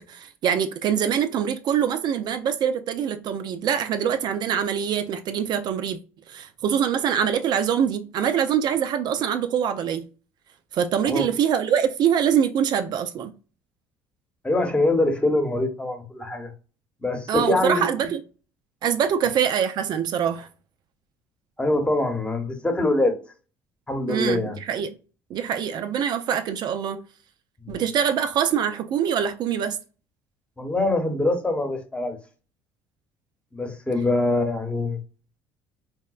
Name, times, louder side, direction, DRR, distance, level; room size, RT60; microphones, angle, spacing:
voice 1, 0.0-6.0 6.3-10.0 10.7-13.3 17.3-18.2 18.8-20.5 24.1-24.9 25.3-27.0 27.7-29.8, right 8 dB, 55° right, 0.4 m, -24 dB
voice 2, 14.4-16.5 17.0-17.8 21.6-23.2 23.9-24.6 27.6-27.8 30.6-32.2 33.5-35.0, left 2 dB, 15° left, 0.9 m, -24 dB
4.0 x 2.1 x 2.3 m
supercardioid pair, 70°, 9 cm